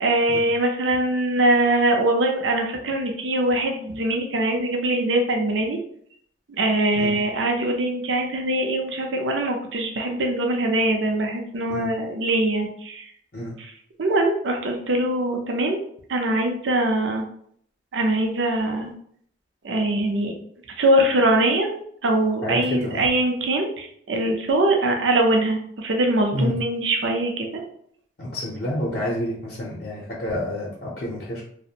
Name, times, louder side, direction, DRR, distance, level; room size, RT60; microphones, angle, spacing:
voice 1, 0.0-5.8 6.5-13.1 14.0-15.8 16.1-17.2 17.9-18.9 19.6-20.3 20.8-27.6, right 1 dB, 85° right, 2 dB, 0.5 m, -22 dB
voice 2, 22.4-23.1 26.3-26.5 28.2-31.4, left 1 dB, 55° left, -5 dB, 0.6 m, -28 dB
2.4 x 2.1 x 2.7 m, 0.64 s
head